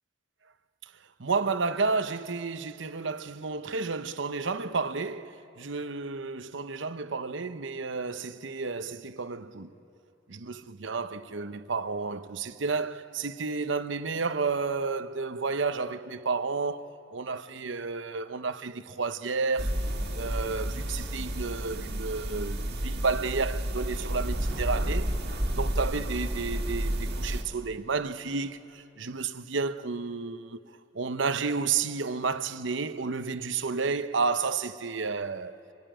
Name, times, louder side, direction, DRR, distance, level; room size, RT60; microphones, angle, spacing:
voice 1, 1.2-9.7 10.3-19.8 20.1-25.1 25.5-30.6 30.9-35.6, right 4 dB, 70° right, 0.9 m, -31 dB
sound 1, 19.6-27.4, right 1 dB, 50° right, 2.1 m, -31 dB
26.0 x 23.0 x 9.0 m
head